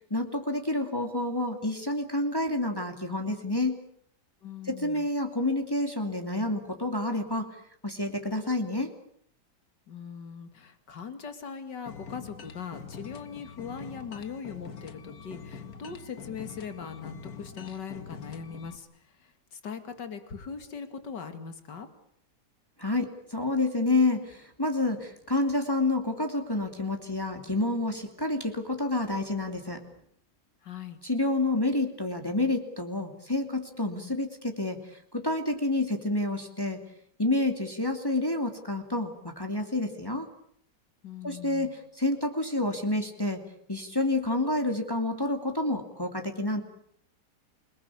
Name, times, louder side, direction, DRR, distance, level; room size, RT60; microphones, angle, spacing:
voice 1, 0.1-3.8 4.6-7.6 7.8-8.9 22.8-29.8 31.0-36.8 37.2-40.3 41.2-43.4 43.7-46.6, left 2 dB, 10° left, 4 dB, 2.7 m, -29 dB
voice 2, 4.4-5.1 9.9-18.9 19.2-21.9 30.6-31.0 41.0-41.7, left 6 dB, 75° left, 9 dB, 2.9 m, -40 dB
sound 1, 11.9-18.8, left 6 dB, 60° left, 2.2 m, -44 dB
28.5 x 20.5 x 8.6 m, 0.67 s
omnidirectional pair, 1.9 m